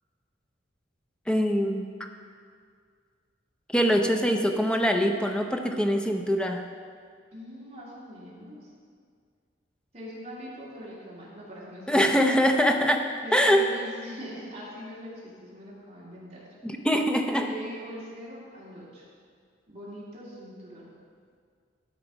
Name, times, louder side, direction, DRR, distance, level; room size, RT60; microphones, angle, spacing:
voice 1, 1.3-1.9 3.7-6.6 11.9-13.7 16.6-17.4, equal, 5° left, 4 dB, 0.5 m, -23 dB
voice 2, 7.3-8.7 9.9-12.4 13.2-16.5 17.3-19.0 19.7-20.9, equal, 35° right, -7 dB, 2.5 m, -42 dB
12.0 x 4.8 x 4.9 m, 2.1 s
head